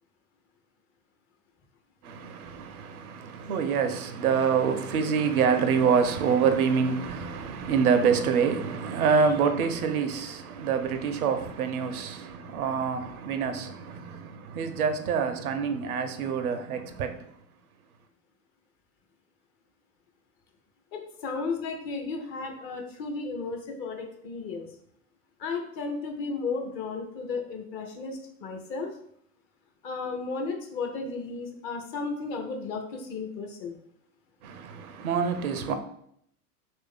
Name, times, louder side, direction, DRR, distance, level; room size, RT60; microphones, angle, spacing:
voice 1, 2.0-17.1 34.4-35.8, right 6 dB, 70° right, 0.6 m, -26 dB
voice 2, 20.9-24.7 25.4-28.9 29.8-33.8, left 4 dB, 30° left, 0.5 m, -34 dB
3.1 x 2.6 x 3.6 m
figure-of-eight pair, 90°, 45 cm